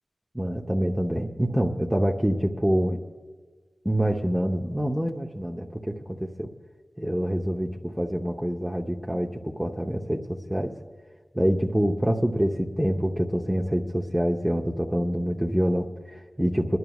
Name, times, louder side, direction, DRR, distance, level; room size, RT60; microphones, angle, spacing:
voice 1, 0.3-3.0 3.8-6.5 7.0-10.7 11.3-16.8, equal, 10° right, -2 dB, 0.8 m, -26 dB
26.5 x 11.0 x 2.4 m, 1.4 s
cardioid pair, 45°, 0 cm